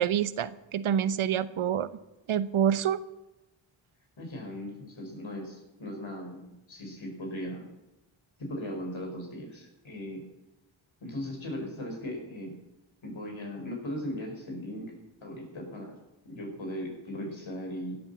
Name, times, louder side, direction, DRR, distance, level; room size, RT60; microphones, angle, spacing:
voice 1, 0.0-1.9 2.3-3.0, right 9 dB, 80° right, 15 dB, 0.8 m, -27 dB
voice 2, 4.2-7.7 8.4-10.3 11.0-12.5 13.0-16.0 16.2-18.0, equal, 70° left, 1 dB, 5.1 m, -38 dB
16.0 x 8.8 x 7.1 m, 0.96 s
cardioid pair, 50°, 49 cm